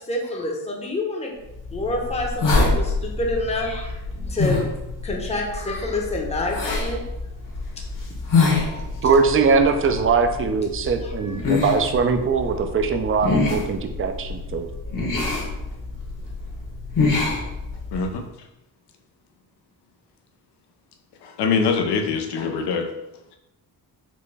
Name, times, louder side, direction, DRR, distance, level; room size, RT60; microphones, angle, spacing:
voice 1, 0.0-1.3 1.7-4.0 4.3-4.6 5.0-7.0 8.6-8.9 11.0-11.7, left 2 dB, 15° left, -1 dB, 0.7 m, -28 dB
sound 1, 1.5-18.1, left 3 dB, 55° left, 1.1 m, -26 dB
voice 2, 9.0-14.7, right 5 dB, 35° right, 6 dB, 0.4 m, -21 dB
voice 3, 17.9-18.2 21.2-22.9, left 5 dB, 90° left, 4 dB, 0.6 m, -23 dB
4.2 x 2.2 x 3.3 m, 0.94 s
cardioid pair, 85°, 39 cm